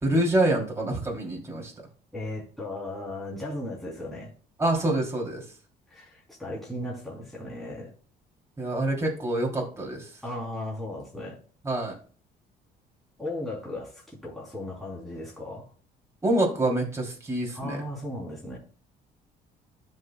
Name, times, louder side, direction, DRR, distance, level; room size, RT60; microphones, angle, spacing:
voice 1, 0.0-1.7 4.6-5.4 8.6-10.1 11.6-11.9 16.2-17.8, right 1 dB, 15° right, 3.0 m, -26 dB
voice 2, 2.1-4.3 5.9-7.9 10.2-11.4 13.2-15.7 17.5-18.6, left 1 dB, ahead, 3.3 m, -36 dB
13.0 x 5.6 x 2.3 m
cardioid pair, 110°, 17 cm